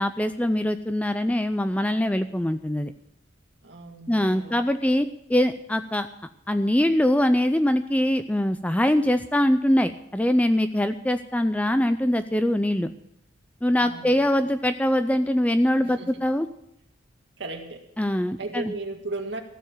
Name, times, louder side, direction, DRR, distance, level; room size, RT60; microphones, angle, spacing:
voice 1, 0.0-2.9 4.1-6.1 6.5-12.9 13.6-16.5 18.0-18.7, left 1 dB, 5° left, 10 dB, 0.4 m, -23 dB
voice 2, 3.6-4.6 13.8-14.5 15.8-16.2 17.4-17.8 18.4-19.4, right 2 dB, 60° right, 3 dB, 1.9 m, -36 dB
15.0 x 7.0 x 9.4 m, 0.78 s
head